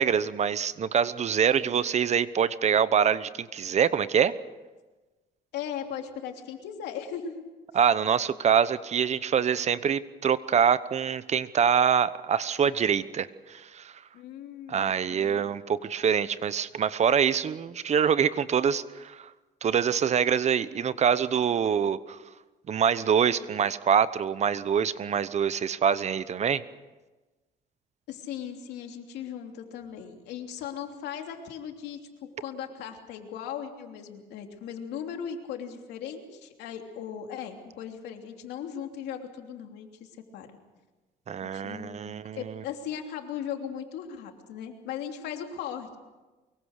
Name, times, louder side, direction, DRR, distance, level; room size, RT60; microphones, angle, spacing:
voice 1, 0.0-4.3 7.7-13.9 14.7-19.3 19.6-22.2 22.7-26.6 41.3-42.6, right 7 dB, 40° right, 15 dB, 1.0 m, -25 dB
voice 2, 5.5-7.4 14.1-15.5 28.1-40.5 41.4-46.0, left 8 dB, 80° left, 4 dB, 3.1 m, -38 dB
24.0 x 22.5 x 6.6 m, 1.2 s
cardioid pair, 110°, 17 cm